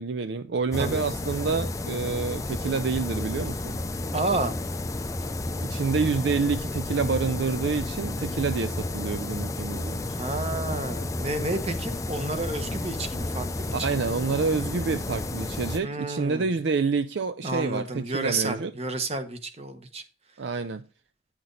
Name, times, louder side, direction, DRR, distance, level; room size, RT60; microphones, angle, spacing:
voice 1, 0.0-3.8 5.6-10.0 13.7-18.7 20.4-20.9, right 4 dB, 55° right, 0.4 m, -28 dB
sound 1, 0.7-15.8, left 2 dB, 15° left, 0.4 m, -31 dB
voice 2, 4.1-4.6 10.1-13.7 15.8-16.5 17.4-20.0, right 2 dB, 30° right, 1.0 m, -31 dB
9.6 x 6.0 x 3.9 m
head